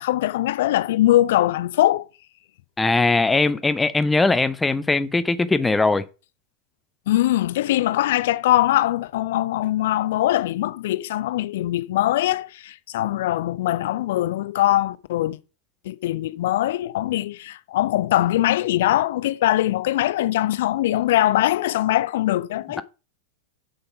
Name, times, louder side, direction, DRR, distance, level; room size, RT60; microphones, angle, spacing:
voice 1, 0.0-2.1 7.1-15.4 15.9-22.8, left 14 dB, 55° left, 0.6 m, -22 dB
voice 2, 2.8-6.0, left 3 dB, 10° left, 0.5 m, -20 dB
6.8 x 5.4 x 5.6 m
figure-of-eight pair, 90°, 0 cm